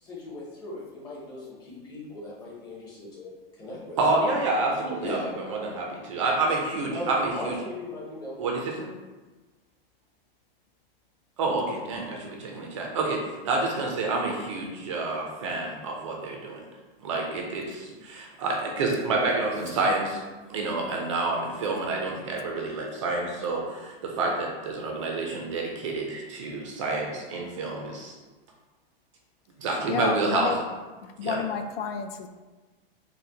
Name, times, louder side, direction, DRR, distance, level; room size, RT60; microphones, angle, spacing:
voice 1, 0.0-4.2 5.0-5.4 6.9-8.9, left 1 dB, 15° left, -6 dB, 0.7 m, -38 dB
voice 2, 4.0-5.2 5.5-7.6 8.4-8.9 11.4-16.6 17.0-20.2 20.5-28.1 29.6-30.6 31.2-31.4, right 3 dB, 30° right, 0 dB, 0.4 m, -28 dB
voice 3, 29.9-30.6 31.2-32.3, left 7 dB, 75° left, 6 dB, 0.5 m, -30 dB
4.2 x 2.1 x 3.8 m, 1.3 s
supercardioid pair, 170°, 30 cm